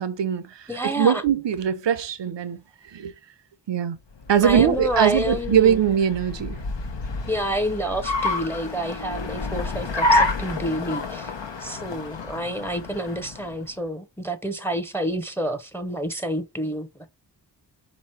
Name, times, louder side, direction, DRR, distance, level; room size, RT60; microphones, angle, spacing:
voice 1, 0.0-3.1 3.7-4.0 4.3-6.6, right 8 dB, 80° right, 0.7 m, -22 dB
voice 2, 0.7-1.2 4.4-5.8 7.3-11.3 11.6-16.9, equal, 5° left, 0.6 m, -28 dB
Car, 4.1-13.6, left 2 dB, 85° left, 0.9 m, -28 dB
4.0 x 3.0 x 4.3 m
wide cardioid pair, 60°, 43 cm